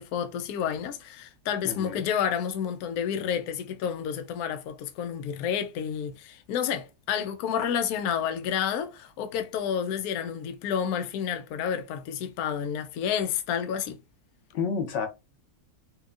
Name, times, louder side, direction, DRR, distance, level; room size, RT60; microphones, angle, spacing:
voice 1, 0.0-14.0, left 8 dB, 85° left, 0.8 m, -30 dB
voice 2, 1.6-2.1 14.5-15.1, left 5 dB, 65° left, 1.4 m, -30 dB
4.3 x 2.2 x 2.4 m
omnidirectional pair, 2.2 m